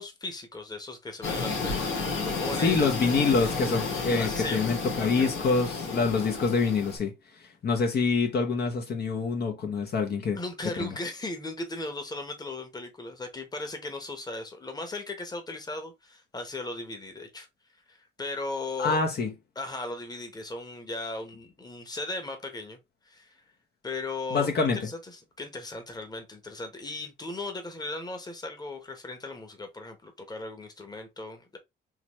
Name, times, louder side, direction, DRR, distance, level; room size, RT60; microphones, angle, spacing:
voice 1, 0.0-2.8 4.2-5.3 10.3-17.5 17.9-19.0 19.5-22.8 23.0-23.4 23.8-31.6, left 2 dB, 20° left, 1.2 m, -37 dB
sound 1, 1.2-7.0, left 4 dB, 85° left, 2.0 m, -32 dB
voice 2, 2.6-10.4 10.8-10.9 18.8-19.3 24.3-24.9, left 4 dB, 55° left, 1.1 m, -26 dB
4.0 x 3.1 x 3.1 m
cardioid pair, 90°, 20 cm